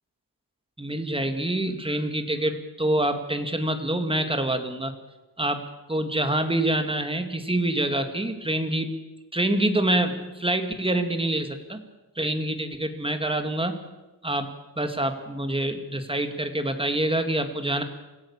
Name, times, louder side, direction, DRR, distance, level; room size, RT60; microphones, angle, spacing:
voice 1, 0.8-4.9 5.4-5.6 5.9-8.9 9.3-11.8 12.2-13.8 14.2-14.5 14.8-17.8, right 1 dB, 15° right, 6 dB, 2.2 m, -26 dB
26.5 x 17.0 x 7.3 m, 1.1 s
wide cardioid pair, 130°, 39 cm